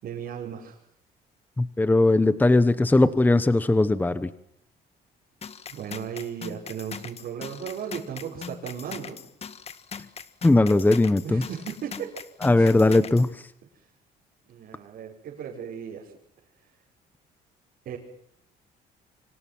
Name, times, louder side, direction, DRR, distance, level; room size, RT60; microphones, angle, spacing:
voice 1, 0.0-0.8 5.7-9.2 11.2-12.1 12.6-12.7 14.5-16.1 17.9-18.0, right 8 dB, 60° right, -4 dB, 6.0 m, -36 dB
voice 2, 1.6-4.3 10.4-11.4 12.4-13.5, left 2 dB, 10° left, 13 dB, 1.1 m, -19 dB
sound 1, 5.4-13.3, left 6 dB, 35° left, 1.6 m, -40 dB
28.5 x 25.5 x 6.2 m, 0.70 s
cardioid pair, 110°, 17 cm